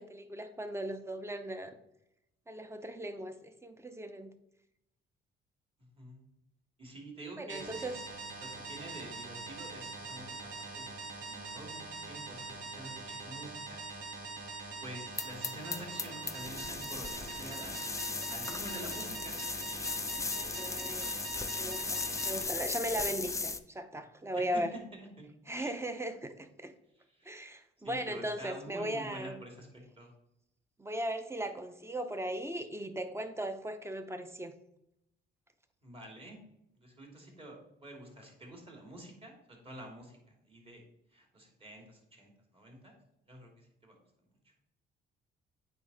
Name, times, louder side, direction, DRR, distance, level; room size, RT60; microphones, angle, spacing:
voice 1, 0.0-1.8 2.5-4.3 7.4-8.0 20.3-21.1 21.6-24.7 25.5-26.7 27.2-29.4 30.8-34.5, right 1 dB, 15° right, 9 dB, 0.8 m, -38 dB
voice 2, 5.8-6.2 6.8-7.9 8.4-10.9 11.3-13.8 14.8-17.9 18.3-19.3 24.3-25.3 25.6-25.8 26.9-27.3 27.8-30.1 35.8-36.4 36.7-40.8 41.1-42.9 43.3-44.0, right 1 dB, 30° right, 1 dB, 2.5 m, -48 dB
sound 1, 7.5-22.4, right 3 dB, 75° right, 1.9 m, -43 dB
sound 2, 15.2-23.6, left 3 dB, 15° left, 0.4 m, -37 dB
8.4 x 4.9 x 4.1 m, 0.81 s
cardioid pair, 90°, 20 cm